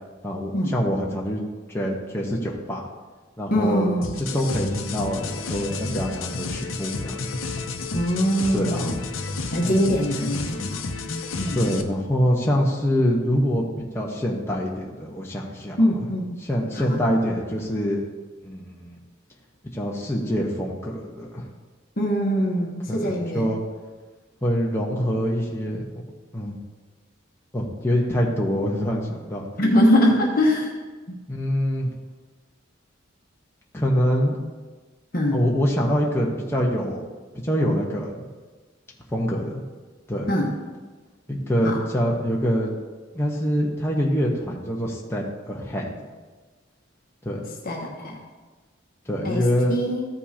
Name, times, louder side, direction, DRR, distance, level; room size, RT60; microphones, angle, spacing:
voice 1, 0.2-1.4 1.7-2.8 3.4-3.9 4.3-7.3 8.5-8.9 11.5-16.1 16.4-18.1 18.4-18.9 19.7-21.5 22.9-23.6 24.4-25.9 26.3-26.6 27.5-29.5 31.3-31.9 33.7-34.4 35.3-37.1 37.4-38.3 39.1-39.6 40.1-40.3 41.3-42.7 43.1-45.9 47.2-47.4 49.1-49.8, equal, 15° left, -3 dB, 1.0 m, -25 dB
voice 2, 3.5-4.2 7.9-9.0 9.5-10.8 11.4-11.6 15.8-16.4 16.8-17.0 22.0-23.5 29.6-30.7 35.1-35.4 40.3-40.5 41.6-41.8 47.6-48.2 49.2-49.4 49.7-50.1, equal, 45° left, -1 dB, 1.1 m, -22 dB
sound 1, 4.0-11.8, left 3 dB, 90° left, 0.7 m, -31 dB
14.0 x 5.4 x 2.8 m, 1.3 s
head